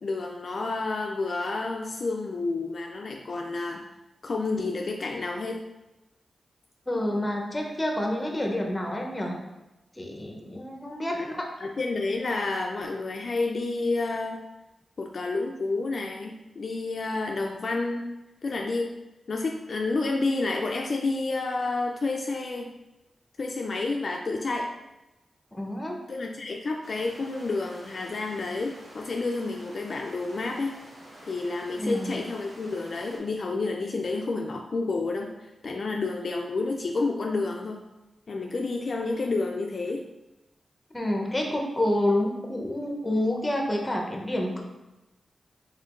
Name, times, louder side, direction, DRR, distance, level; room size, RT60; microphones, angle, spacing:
voice 1, 0.0-3.8 4.2-5.6 11.1-11.3 11.6-14.4 15.0-18.1 18.4-18.9 19.3-22.7 23.4-24.7 26.1-30.7 31.3-37.8 38.3-40.0, left 3 dB, 55° left, 1 dB, 0.3 m, -30 dB
voice 2, 6.9-9.4 10.0-11.5 25.5-26.0 31.7-32.1 40.9-44.6, left 1 dB, 15° left, 1 dB, 0.7 m, -28 dB
sound 1, 26.8-33.2, right 1 dB, 80° right, 1.1 m, -49 dB
4.3 x 3.5 x 2.5 m, 0.99 s
wide cardioid pair, 95°, 0 cm